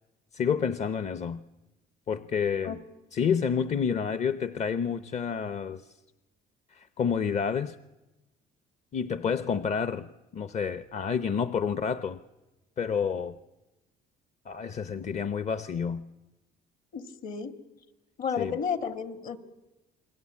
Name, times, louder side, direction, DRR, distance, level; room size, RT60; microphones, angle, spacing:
voice 1, 0.3-1.4 2.1-2.8 3.1-6.0 6.7-7.8 8.9-10.1 10.3-12.2 12.8-13.3 14.5-16.0 18.4-18.6, left 6 dB, 40° left, 0.8 m, -29 dB
voice 2, 16.9-17.5 18.2-19.4, left 6 dB, 60° left, 2.3 m, -32 dB
28.5 x 21.5 x 8.6 m
cardioid pair, 110°, 17 cm